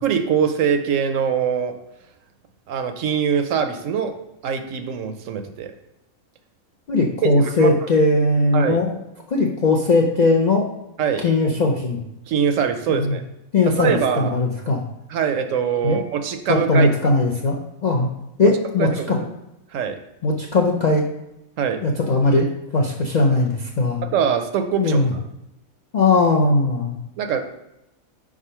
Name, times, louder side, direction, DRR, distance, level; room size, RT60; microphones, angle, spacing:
voice 1, 0.0-1.7 2.7-4.1 4.4-5.7 7.2-7.3 7.6-7.7 8.5-8.8 11.0-11.2 12.3-13.2 13.8-14.4 15.1-16.9 18.8-19.3 19.7-20.0 21.6-21.8 24.0-25.0 27.2-27.4, right 7 dB, 70° right, 7 dB, 0.9 m, -22 dB
voice 2, 6.9-9.0 9.3-10.7 11.2-12.0 12.9-13.2 13.5-14.8 15.8-16.0 16.5-18.1 18.4-19.2 20.2-21.0 21.8-22.5 22.7-24.0 24.8-25.1 25.9-27.0, left 2 dB, 55° left, -1 dB, 0.5 m, -19 dB
5.1 x 3.6 x 5.5 m, 0.89 s
omnidirectional pair, 1.5 m